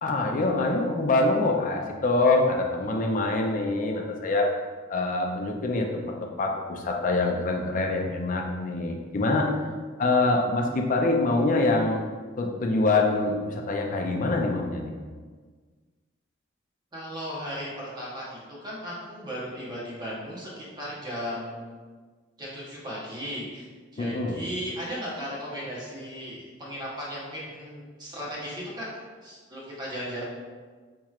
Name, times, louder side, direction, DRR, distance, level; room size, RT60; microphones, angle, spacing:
voice 1, 0.0-4.5 4.9-9.6 10.0-12.0 12.4-14.9 24.0-24.4, left 2 dB, 40° left, 2 dB, 0.4 m, -25 dB
voice 2, 16.9-21.7 22.4-23.6 23.9-28.9 29.2-30.2, equal, 20° right, -6 dB, 0.9 m, -36 dB
4.4 x 2.9 x 2.4 m, 1.5 s
head